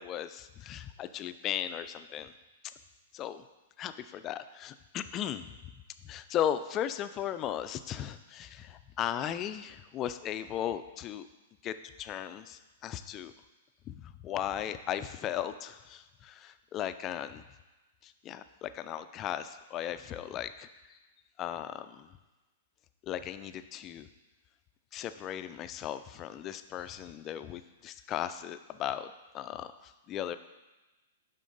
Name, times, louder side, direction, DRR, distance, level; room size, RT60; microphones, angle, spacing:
voice 1, 0.0-2.3 2.6-2.7 3.1-3.4 3.8-5.7 6.0-11.3 11.6-13.3 13.9-17.4 18.0-21.0 21.4-22.1 23.0-24.1 24.9-30.4, left 10 dB, 30° left, 11 dB, 0.4 m, -37 dB
11.0 x 3.7 x 3.9 m, 1.1 s
hypercardioid pair, 110°, 0 cm